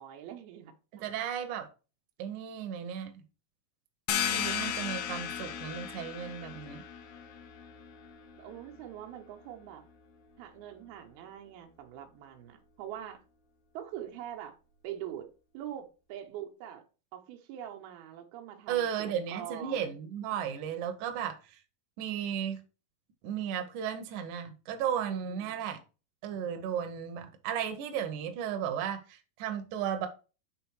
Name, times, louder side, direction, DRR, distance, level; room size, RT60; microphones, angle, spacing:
voice 1, 0.0-1.1 8.4-9.8 10.4-13.2 13.7-14.6 14.8-15.3 15.5-16.8 17.1-19.9 25.1-25.7, right 11 dB, 85° right, 2.9 m, -44 dB
voice 2, 0.9-1.7 2.2-3.2 4.3-6.8 18.7-21.6 22.0-22.6 23.2-25.8 26.2-30.1, right 9 dB, 70° right, 2.1 m, -35 dB
sound 1, 4.1-9.5, left 9 dB, 90° left, 2.8 m, -36 dB
8.1 x 4.3 x 4.6 m
omnidirectional pair, 4.4 m